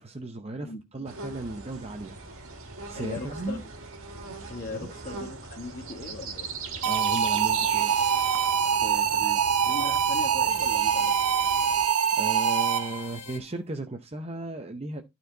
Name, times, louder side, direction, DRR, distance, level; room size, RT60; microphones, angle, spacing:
voice 1, 0.0-2.2 2.9-3.6 4.7-4.9 6.8-8.0 12.1-15.0, right 2 dB, 25° right, 0.7 m, -36 dB
sound 1, 1.0-11.9, right 4 dB, 60° right, 1.8 m, -41 dB
voice 2, 2.9-3.6 4.5-6.5 8.8-11.3, left 3 dB, 35° left, 1.7 m, -39 dB
sound 2, 6.8-13.1, right 8 dB, 80° right, 0.6 m, -24 dB
sound 3, 7.7-8.5 10.5-13.4, left 6 dB, 55° left, 2.0 m, -44 dB
12.0 x 4.5 x 3.9 m
head